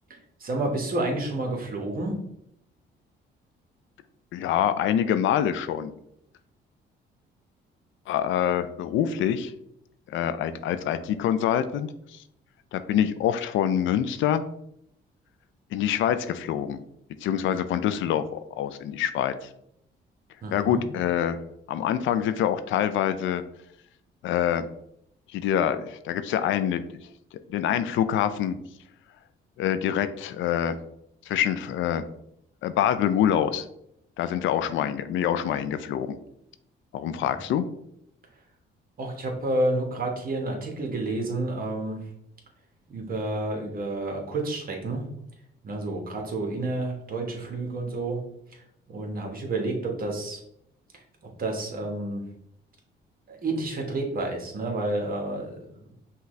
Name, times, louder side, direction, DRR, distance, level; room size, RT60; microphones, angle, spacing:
voice 1, 0.4-2.2 20.4-20.8 37.1-37.4 39.0-42.1 42.9-45.0 45.6-48.2 48.5-50.4 50.9-51.0 51.4-52.2 53.3-55.9, right 2 dB, 45° right, 2 dB, 1.2 m, -30 dB
voice 2, 4.3-5.9 8.1-9.5 10.1-12.2 12.7-14.4 15.7-16.8 17.2-19.5 20.5-21.4 21.7-23.4 24.2-24.7 25.3-26.8 27.5-28.6 29.6-30.8 31.3-32.0 32.6-33.7 34.2-36.2 36.9-37.7, left 10 dB, 75° left, 12 dB, 0.4 m, -25 dB
5.7 x 2.4 x 3.1 m, 0.75 s
cardioid pair, 90°, 20 cm